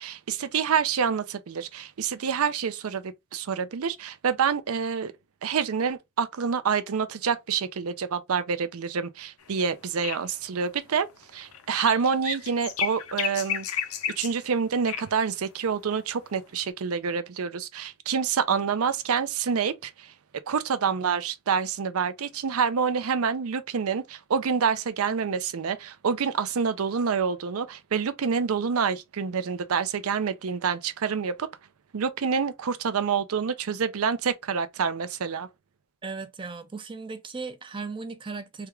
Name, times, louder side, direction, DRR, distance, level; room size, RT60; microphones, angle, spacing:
voice 1, 0.0-5.1 5.4-11.1 11.3-13.7 14.2-20.1 20.5-31.5 31.9-35.5, right 6 dB, 80° right, 0.5 m, -27 dB
sound 1, 9.4-9.5 9.7-9.8 10.0-10.5 11.0-14.4 14.9-15.1 16.6-16.7, left 9 dB, 80° left, 0.6 m, -32 dB
voice 2, 36.0-38.7, right 4 dB, 20° right, 0.4 m, -37 dB
3.4 x 2.3 x 3.0 m
head